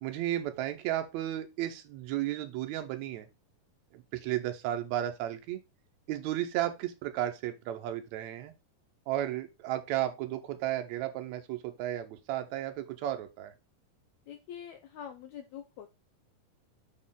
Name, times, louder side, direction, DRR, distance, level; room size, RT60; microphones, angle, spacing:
voice 1, 0.0-3.3 3.9-5.6 6.1-8.5 9.1-13.5, right 13 dB, 75° right, 1.8 m, -34 dB
voice 2, 14.3-15.9, left 9 dB, 85° left, 1.6 m, -45 dB
6.5 x 4.3 x 3.7 m
omnidirectional pair, 3.9 m